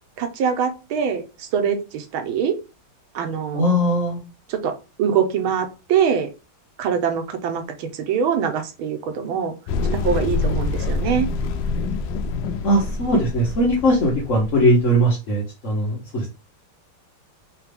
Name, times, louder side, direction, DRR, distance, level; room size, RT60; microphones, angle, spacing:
voice 1, 0.2-2.6 3.1-3.6 4.5-6.3 6.8-9.5 9.9-11.3, right 7 dB, 80° right, 7 dB, 1.6 m, -23 dB
voice 2, 3.5-4.2 12.6-16.2, equal, 45° left, -3 dB, 1.2 m, -19 dB
sound 1, 9.7-14.8, left 3 dB, 75° left, 1.1 m, -26 dB
4.0 x 3.2 x 3.4 m, 0.29 s
omnidirectional pair, 2.3 m